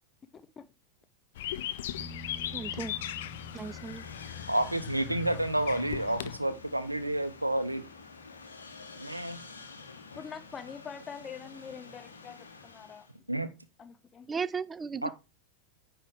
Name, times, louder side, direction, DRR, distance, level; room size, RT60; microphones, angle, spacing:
voice 1, 0.3-0.7 10.2-13.1 13.8-14.3, left 6 dB, 20° left, 0.8 m, -45 dB
sound 1, 1.4-6.4, left 12 dB, 55° left, 0.4 m, -38 dB
sound 2, 2.0-9.6 12.6-12.7, left 2 dB, ahead, 1.3 m, -50 dB
voice 2, 2.5-3.0 3.5-4.0 14.3-15.1, right 5 dB, 15° right, 0.3 m, -35 dB
sound 3, 3.0-13.2, left 4 dB, 70° left, 1.3 m, -49 dB
voice 3, 4.5-7.8 9.0-9.4 13.3-13.5 15.0-15.1, right 1 dB, 85° right, 0.7 m, -30 dB
9.7 x 3.3 x 4.7 m
figure-of-eight pair, 90°, 0 cm